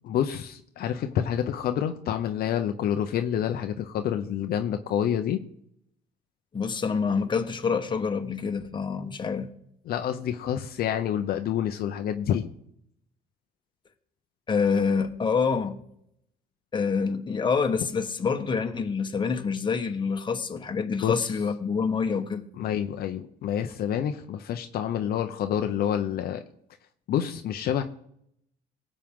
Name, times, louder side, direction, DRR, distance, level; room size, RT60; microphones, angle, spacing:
voice 1, 0.0-5.4 9.9-12.5 21.0-21.3 22.6-26.4 27.1-27.8, left 9 dB, 65° left, 0.8 m, -28 dB
voice 2, 6.5-9.5 14.5-15.8 16.7-22.4, left 5 dB, 30° left, 1.3 m, -26 dB
19.0 x 7.5 x 3.8 m
cardioid pair, 110°, 17 cm